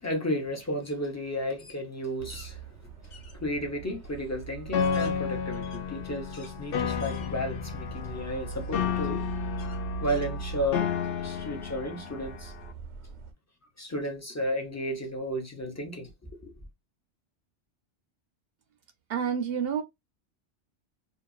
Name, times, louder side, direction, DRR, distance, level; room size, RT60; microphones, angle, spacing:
voice 1, 0.0-9.2 10.0-10.9 11.2-12.5 13.8-16.1 16.4-16.5, equal, 20° left, 0.6 m, -33 dB
sound 1, 0.8-1.0 1.4-2.5 3.1-3.4 4.0-4.1 4.6-6.6 7.0-7.7 8.2-8.3 9.6-10.8, left 4 dB, 85° left, 1.2 m, -52 dB
sound 2, 2.2-13.3, right 5 dB, 90° right, 0.9 m, -41 dB
Piano, 4.7-12.7, left 8 dB, 60° left, 0.7 m, -32 dB
voice 2, 19.1-19.8, right 7 dB, 65° right, 0.7 m, -28 dB
2.6 x 2.4 x 2.3 m
omnidirectional pair, 1.2 m